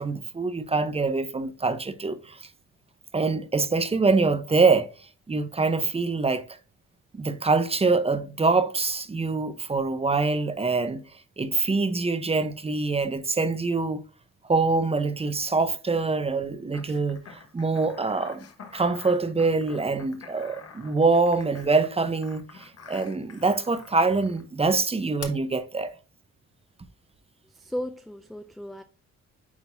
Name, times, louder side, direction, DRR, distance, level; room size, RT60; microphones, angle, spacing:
voice 1, 0.0-2.4 3.1-4.9 5.3-6.4 7.1-11.0 11.4-14.0 14.5-18.5 18.7-25.9, right 3 dB, 20° right, 0.8 m, -24 dB
sound 1, 16.7-24.4 25.2-25.3, left 6 dB, 55° left, 1.3 m, -46 dB
voice 2, 27.5-28.8, equal, ahead, 0.4 m, -35 dB
9.5 x 3.8 x 2.7 m
cardioid pair, 90°, 30 cm